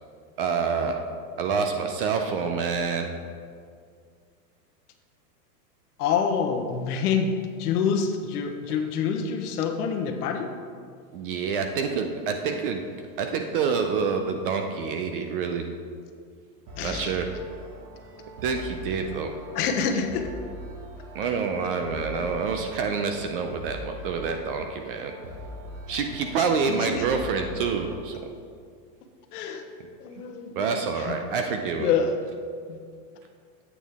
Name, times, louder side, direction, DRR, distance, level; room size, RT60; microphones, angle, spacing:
voice 1, 0.4-1.0 1.4-3.1 11.1-12.8 13.2-15.7 16.8-17.3 18.4-19.3 21.1-25.1 25.9-28.1 30.5-31.9, right 5 dB, 35° right, 5 dB, 0.4 m, -27 dB
voice 2, 6.0-7.3 7.6-10.5 16.8-17.2 19.5-20.3 25.9-26.0 26.4-27.0 29.3-29.6 30.0-30.5 31.0-31.2 31.8-32.2 32.7-32.8, left 6 dB, 65° left, 5 dB, 1.0 m, -27 dB
sound 1, 16.7-28.0, equal, 60° right, 2.2 m, -42 dB
8.5 x 7.2 x 3.5 m, 2.1 s
supercardioid pair, 145°, 50 cm